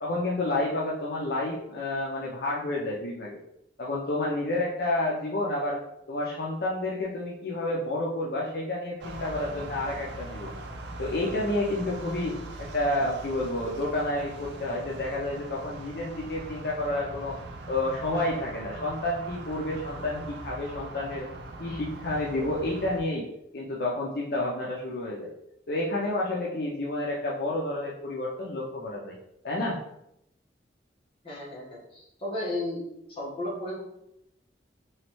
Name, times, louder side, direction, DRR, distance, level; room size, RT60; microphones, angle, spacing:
voice 1, 0.0-3.4 3.8-5.8 6.1-10.5 11.0-17.4 17.7-21.3 21.6-23.2 23.5-25.3 25.7-29.1 29.4-29.8, left 1 dB, 60° left, -4 dB, 0.5 m, -30 dB
sound 1, 9.0-23.0, right 2 dB, 75° right, 0.4 m, -41 dB
voice 2, 31.2-32.8 33.1-33.8, left 1 dB, 30° left, -6 dB, 1.1 m, -34 dB
3.1 x 3.0 x 2.9 m, 0.80 s
head